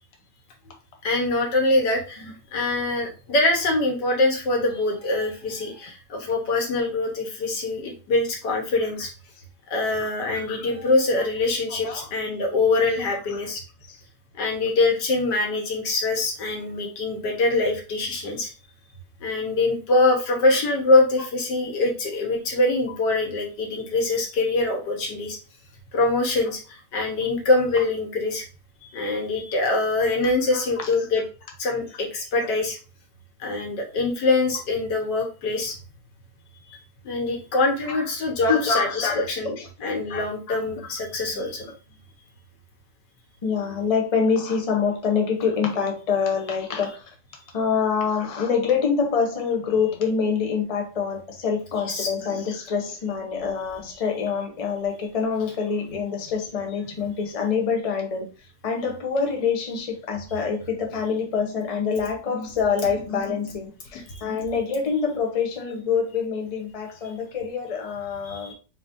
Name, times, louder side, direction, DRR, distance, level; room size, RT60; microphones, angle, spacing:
voice 1, 1.0-9.1 9.7-13.6 14.4-18.5 19.2-25.4 25.9-28.5 28.9-31.2 31.6-32.8 33.4-35.8 36.7-36.8 37.0-39.5 39.8-41.7 51.7-52.1 64.1-64.2 68.3-68.5, left 2 dB, 85° left, 1 dB, 1.8 m, -24 dB
voice 2, 38.5-39.7 40.1-40.9 43.4-47.0 47.5-58.3 58.6-68.5, left 6 dB, 30° left, 2 dB, 0.7 m, -26 dB
4.2 x 3.9 x 2.6 m, 0.34 s
omnidirectional pair, 1.8 m